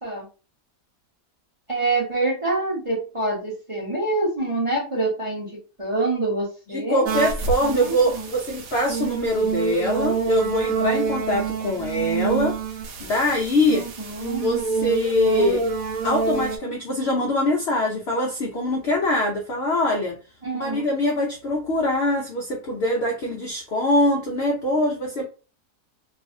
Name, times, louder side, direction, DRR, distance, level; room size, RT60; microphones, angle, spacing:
voice 1, 1.7-5.5 5.8-7.0 7.6-8.3 13.7-14.4 20.4-20.8, right 2 dB, 30° right, -4 dB, 0.6 m, -26 dB
voice 2, 6.7-12.6 13.0-13.8 14.3-15.6 16.0-20.2 20.6-25.2, left 1 dB, 90° left, -1 dB, 0.5 m, -23 dB
sound 1, 7.1-16.6, right 5 dB, 65° right, 1.0 m, -27 dB
2.6 x 2.4 x 2.5 m, 0.34 s
omnidirectional pair, 1.7 m